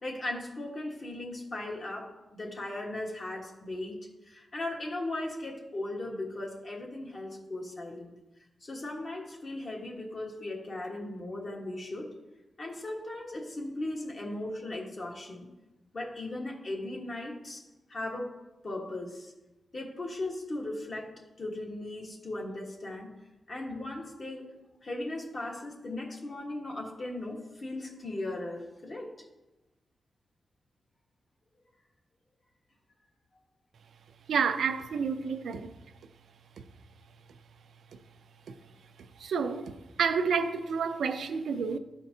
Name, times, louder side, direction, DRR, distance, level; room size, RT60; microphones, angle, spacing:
voice 1, 0.0-8.1 8.6-12.1 12.6-15.5 15.9-17.6 17.9-18.3 18.6-19.3 19.7-23.1 23.5-24.5 24.8-29.1, left 2 dB, 50° left, -1 dB, 1.4 m, -37 dB
voice 2, 34.3-35.7 38.5-38.6 39.2-41.8, right 6 dB, 85° right, 9 dB, 0.4 m, -29 dB
12.0 x 4.4 x 2.7 m, 1.0 s
cardioid pair, 75°, 0 cm